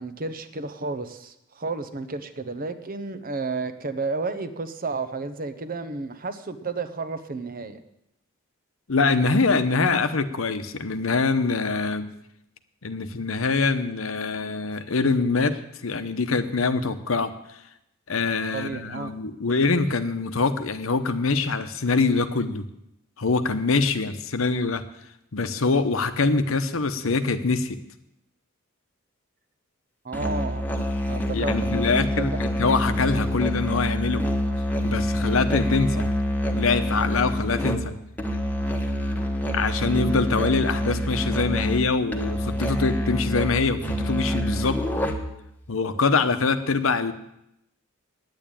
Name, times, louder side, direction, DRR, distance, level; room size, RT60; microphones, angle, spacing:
voice 1, 0.0-7.8 18.5-19.2 30.0-30.7 31.1-32.4, right 3 dB, 45° right, 10 dB, 0.9 m, -32 dB
voice 2, 8.9-12.1 12.8-17.6 18.1-22.7 23.2-24.8 25.3-27.8 31.3-34.2 34.8-36.1 36.5-38.0 39.5-44.8 45.7-47.1, left 4 dB, 75° left, 10 dB, 0.9 m, -24 dB
Musical instrument, 30.1-45.4, equal, 10° left, 1.3 m, -26 dB
9.7 x 9.2 x 8.9 m, 0.81 s
head